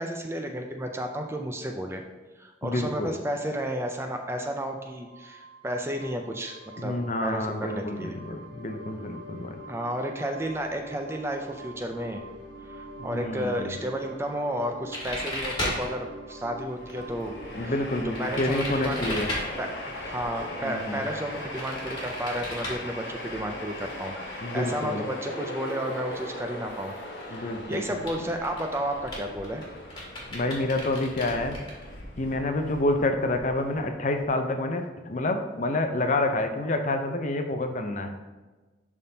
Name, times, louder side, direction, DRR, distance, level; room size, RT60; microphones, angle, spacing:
voice 1, 0.0-2.0 2.4-8.2 9.7-12.2 12.6-17.7 18.0-19.1 19.6-26.9 27.3-29.6, equal, 15° right, 4 dB, 0.4 m, -32 dB
voice 2, 2.6-3.1 6.8-9.6 13.0-13.8 17.5-19.3 20.6-21.1 24.4-25.0 27.3-28.3 30.3-31.6 32.2-38.2, left 2 dB, 40° left, 6 dB, 0.5 m, -28 dB
sound 1, 4.7-19.1, right 1 dB, 75° right, 1.0 m, -45 dB
sound 2, 14.9-15.9 18.1-19.4 21.6-22.8 26.8-26.9 27.2-27.4 27.7-28.1 28.4-31.8, left 1 dB, 25° left, 1.5 m, -33 dB
Train, 16.7-34.3, left 1 dB, 70° left, 1.2 m, -39 dB
10.5 x 3.6 x 2.8 m, 1.2 s
head